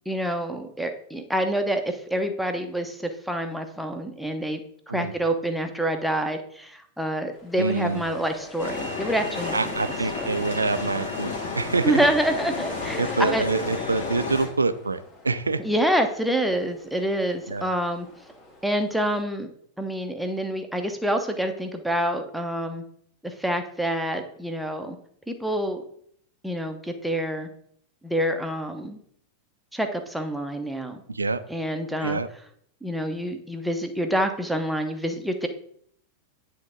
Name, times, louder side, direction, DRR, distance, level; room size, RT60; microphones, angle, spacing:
voice 1, 0.1-4.6 4.9-9.7 10.2-10.3 11.8-13.4 15.6-18.1 18.6-19.5 19.8-22.8 23.2-25.0 25.3-25.8 26.4-27.5 28.0-29.0 29.7-31.0 31.5-32.2 32.8-35.5, right 1 dB, ahead, 5 dB, 0.8 m, -27 dB
sound 1, 7.3-19.2, left 1 dB, 30° left, 1.5 m, -45 dB
voice 2, 7.6-8.0 9.5-12.0 13.0-15.0 15.2-15.6 17.5-17.7 31.1-31.4 32.0-32.3, right 3 dB, 80° right, 12 dB, 0.4 m, -26 dB
sound 2, 8.6-14.5, left 4 dB, 65° left, 2.1 m, -31 dB
9.6 x 3.5 x 5.0 m, 0.66 s
figure-of-eight pair, 90°, 0 cm